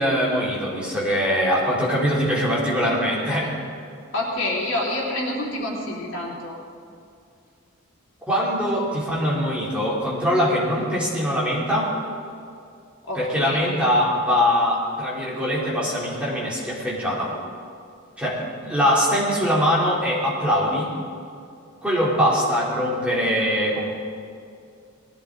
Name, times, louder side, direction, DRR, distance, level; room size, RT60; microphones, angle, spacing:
voice 1, 0.0-3.5 8.3-11.9 13.1-17.3 18.2-20.9 21.8-23.9, equal, 5° right, -6 dB, 3.1 m, -22 dB
voice 2, 4.1-6.6 13.1-13.7, left 1 dB, 65° left, -4 dB, 3.3 m, -28 dB
20.0 x 15.0 x 3.9 m, 2.4 s
head